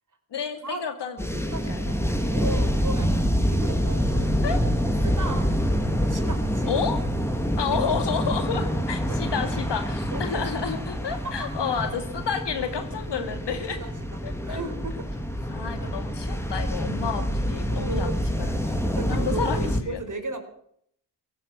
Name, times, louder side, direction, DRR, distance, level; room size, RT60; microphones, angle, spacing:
voice 1, 0.3-1.4 1.7-1.8 4.4-4.6 6.7-7.0 7.6-13.8 14.2-14.6 15.5-18.5 18.9-20.0, left 6 dB, 65° left, 8 dB, 2.5 m, -30 dB
sound 1, 1.2-19.8, equal, 5° left, 3.2 m, -26 dB
voice 2, 1.5-2.0 2.3-4.7 5.0-5.5 6.1-6.9 7.6-7.8 9.1-9.5 10.1-10.5 11.1-11.5 13.7-15.1 15.3-15.5 17.7-18.3 18.7-20.4, right 3 dB, 45° right, 6 dB, 4.5 m, -36 dB
17.0 x 11.5 x 7.3 m, 0.68 s
supercardioid pair, 50°, 44 cm